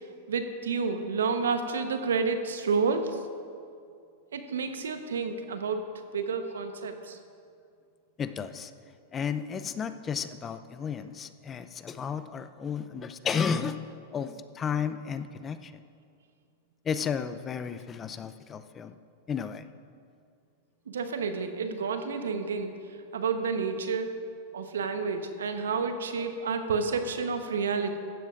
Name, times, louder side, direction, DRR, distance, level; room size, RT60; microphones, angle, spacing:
voice 1, 0.3-3.2 4.3-5.9 6.1-7.2 20.9-24.1 24.5-28.0, right 5 dB, 80° right, 7 dB, 1.0 m, -30 dB
voice 2, 8.2-8.7 9.1-13.8 14.1-15.8 16.8-18.9 19.3-19.7, left 6 dB, 25° left, 11 dB, 0.5 m, -33 dB
15.5 x 12.5 x 2.5 m, 2.3 s
hypercardioid pair, 105°, 0 cm